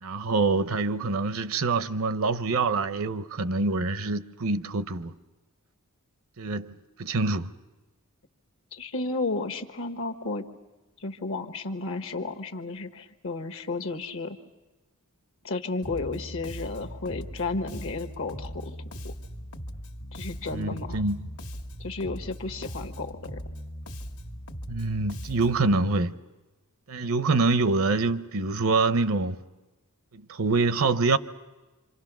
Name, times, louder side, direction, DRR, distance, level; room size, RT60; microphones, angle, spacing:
voice 1, 0.0-5.1 6.4-6.7 7.0-7.5 20.5-21.3 24.7-26.1 26.9-29.4 30.1-31.2, right 3 dB, 65° right, 0.7 m, -25 dB
voice 2, 8.7-10.5 11.0-14.4 15.4-18.7 19.0-19.1 20.1-21.0 21.8-23.4, left 3 dB, 60° left, 1.3 m, -33 dB
Bass guitar, 15.8-25.7, equal, 90° left, 1.8 m, -39 dB
27.0 x 26.5 x 6.1 m
head